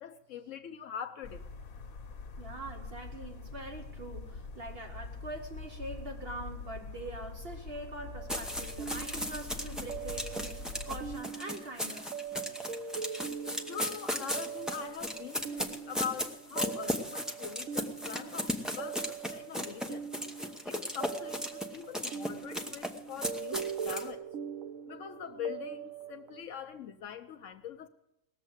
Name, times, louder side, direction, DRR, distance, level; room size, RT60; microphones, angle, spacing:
voice 1, 0.0-1.4 13.7-20.0 20.7-24.2 24.9-27.9, left 8 dB, 70° left, 1.0 m, -42 dB
sound 1, 1.2-11.2, left 4 dB, 90° left, 1.4 m, -44 dB
voice 2, 2.4-12.1, right 2 dB, 50° right, 1.2 m, -43 dB
sound 2, 8.0-26.4, right 7 dB, 75° right, 1.2 m, -42 dB
sound 3, 8.3-24.1, left 1 dB, ahead, 0.9 m, -36 dB
19.0 x 7.3 x 7.9 m
omnidirectional pair, 1.4 m